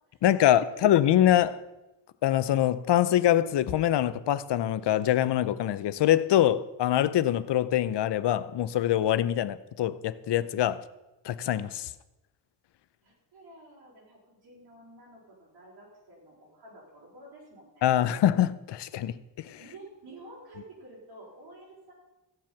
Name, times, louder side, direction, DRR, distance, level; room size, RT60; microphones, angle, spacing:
voice 1, 0.2-1.6 2.2-10.8 11.2-11.9 17.8-19.6, left 12 dB, 65° left, 0.8 m, -24 dB
voice 2, 13.0-17.8 19.6-21.9, right 1 dB, 70° right, 5.0 m, -50 dB
15.5 x 7.5 x 5.9 m
cardioid pair, 95°, 45 cm